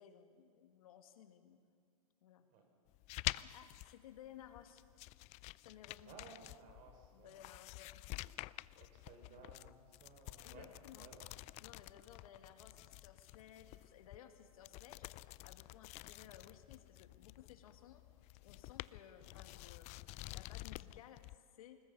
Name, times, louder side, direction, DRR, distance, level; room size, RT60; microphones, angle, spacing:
voice 1, 0.0-1.6 2.2-2.5 3.4-4.8 5.6-6.2 7.1-8.3 10.4-11.1 11.6-18.1 18.4-21.8, left 10 dB, 70° left, 7 dB, 2.0 m, -58 dB
sound 1, 2.9-21.4, left 20 dB, 35° left, 0.5 m, -49 dB
voice 2, 6.0-7.4 8.8-11.3, right 4 dB, 45° right, 3 dB, 5.6 m, -58 dB
28.0 x 20.0 x 5.5 m, 2.1 s
hypercardioid pair, 115°, 19 cm